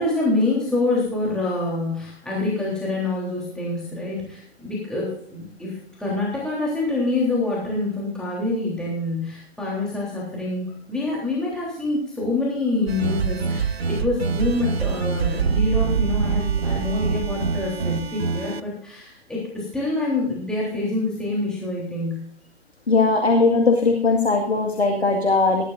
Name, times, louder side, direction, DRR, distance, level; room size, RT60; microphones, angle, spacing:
voice 1, 0.0-10.6 10.9-22.2, left 2 dB, ahead, -6 dB, 3.3 m, -26 dB
sound 1, 12.9-18.6, right 6 dB, 75° right, 0.9 m, -24 dB
voice 2, 22.9-25.6, left 3 dB, 80° left, 4 dB, 1.9 m, -19 dB
19.0 x 12.0 x 2.5 m, 0.64 s
figure-of-eight pair, 115°, 32 cm